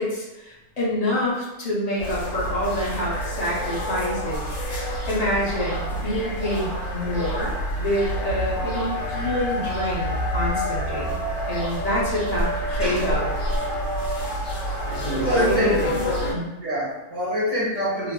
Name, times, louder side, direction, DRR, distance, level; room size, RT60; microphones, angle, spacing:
voice 1, 0.0-4.5 5.0-7.5 7.8-11.2 11.5-13.3 15.5-16.0 16.3-16.5, left 1 dB, 40° left, -6 dB, 0.6 m, -27 dB
sound 1, 2.0-16.3, equal, 70° left, 1.1 m, -27 dB
voice 2, 15.2-16.3 16.6-18.1, equal, 30° right, -9 dB, 1.1 m, -26 dB
3.1 x 2.4 x 2.2 m, 0.98 s
omnidirectional pair, 1.5 m